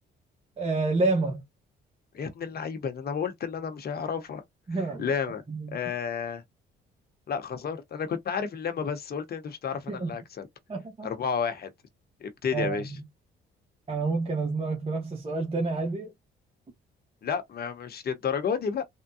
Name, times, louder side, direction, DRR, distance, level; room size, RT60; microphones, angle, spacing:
voice 1, 0.6-1.4 4.7-5.1 5.5-5.8 9.9-10.1 10.7-11.1 12.5-12.9 13.9-16.1, right 3 dB, 30° right, 1.0 m, -28 dB
voice 2, 2.1-4.4 5.0-5.4 5.7-6.4 7.3-10.5 11.0-11.7 12.2-12.9 17.2-18.8, left 6 dB, 50° left, 0.9 m, -31 dB
3.6 x 2.2 x 2.7 m
cardioid pair, 90°, 20 cm